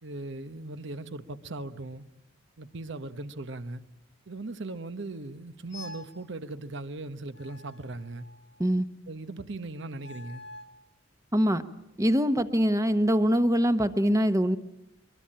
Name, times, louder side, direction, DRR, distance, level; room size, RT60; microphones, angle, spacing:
voice 1, 0.0-2.1 2.6-3.8 4.3-8.3 9.1-10.4, right 2 dB, 60° right, 1.1 m, -38 dB
sound 1, 5.7-6.2 7.4-8.6 9.9-10.8, left 2 dB, 60° left, 1.5 m, -47 dB
voice 2, 11.3-11.6 12.0-14.6, equal, 15° right, 1.1 m, -23 dB
23.5 x 22.5 x 8.8 m
head